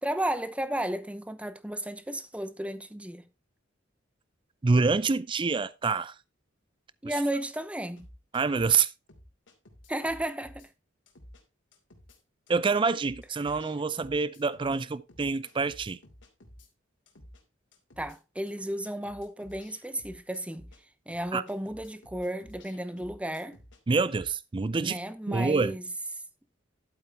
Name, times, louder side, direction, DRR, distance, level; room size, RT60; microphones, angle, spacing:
voice 1, 0.0-3.2 7.0-8.1 9.9-10.7 18.0-20.7 21.1-23.6 24.8-25.9, right 1 dB, 5° right, 0.8 m, -33 dB
voice 2, 4.6-6.1 8.3-8.9 12.5-16.0 21.3-21.4 23.9-25.0 25.3-25.7, right 4 dB, 25° right, 0.4 m, -26 dB
sound 1, 8.0-8.8 9.1-10.7 11.1-11.4 11.7-12.2 12.5-12.6 12.8-14.8 15.1-16.7 17.1-17.4 17.7-18.2 18.5-18.6 18.8-20.8 21.1-23.8 24.1-24.3, left 1 dB, 70° left, 2.7 m, -52 dB
11.5 x 8.7 x 3.4 m
head